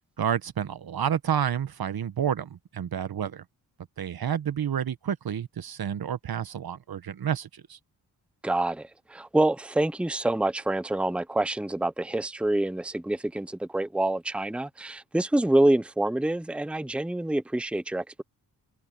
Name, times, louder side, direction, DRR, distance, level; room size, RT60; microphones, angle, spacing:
voice 1, 0.2-3.4 4.0-7.8, right 8 dB, 60° right, 1.3 m, -29 dB
voice 2, 8.4-18.2, right 1 dB, 5° right, 0.9 m, -26 dB
cardioid pair, 50°, 40 cm